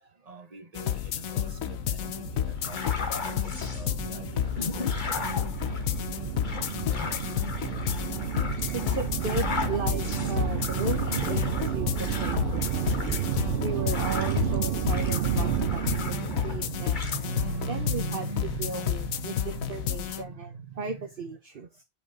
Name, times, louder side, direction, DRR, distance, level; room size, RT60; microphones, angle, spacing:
voice 1, 0.2-4.5 6.4-6.5 8.7-8.8 15.5-21.1, right 3 dB, 30° right, 1.5 m, -39 dB
sound 1, 0.8-20.2, left 11 dB, 90° left, 1.2 m, -31 dB
sound 2, 0.8-17.8, right 12 dB, 60° right, 0.6 m, -32 dB
sound 3, 2.6-3.9 4.3-14.6 14.9-16.6 16.9-17.2, left 4 dB, 40° left, 1.3 m, -37 dB
voice 2, 8.7-12.9 13.6-16.0 16.4-17.0 17.7-18.2 18.6-20.5 20.8-21.8, right 5 dB, 45° right, 1.1 m, -35 dB
8.6 x 5.2 x 3.9 m
omnidirectional pair, 1.4 m